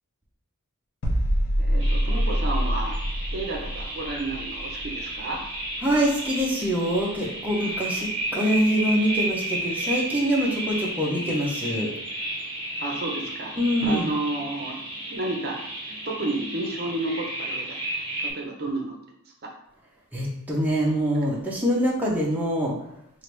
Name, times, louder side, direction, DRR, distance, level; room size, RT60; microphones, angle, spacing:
sound 1, 1.0-6.7 7.0-7.2, equal, 90° left, 0.8 m, -26 dB
voice 1, 1.6-3.0 3.3-5.4 12.8-13.5 13.8-15.6 15.9-17.8 18.2-19.0 19.4-19.5, right 2 dB, 45° right, 0 dB, 0.7 m, -31 dB
sound 2, 1.8-18.3, right 1 dB, 25° right, 1.4 m, -33 dB
voice 2, 5.8-11.9 13.6-14.1 20.1-22.8, equal, 10° right, -4 dB, 0.6 m, -24 dB
4.6 x 2.5 x 3.2 m, 0.73 s
head